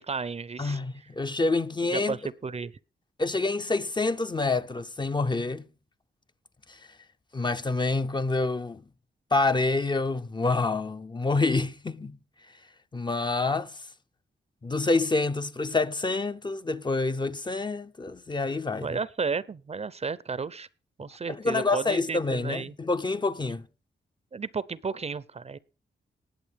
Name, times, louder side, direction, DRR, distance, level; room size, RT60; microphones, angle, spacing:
voice 1, 0.0-0.8 1.9-2.7 18.8-20.7 21.0-22.7 24.3-25.6, right 5 dB, 35° right, 0.5 m, -33 dB
voice 2, 0.6-2.2 3.2-5.6 6.7-6.8 7.3-8.8 9.3-12.2 12.9-13.8 14.6-19.0 21.3-23.7, left 3 dB, 25° left, 0.6 m, -27 dB
19.5 x 7.9 x 3.4 m
wide cardioid pair, 130°, 18 cm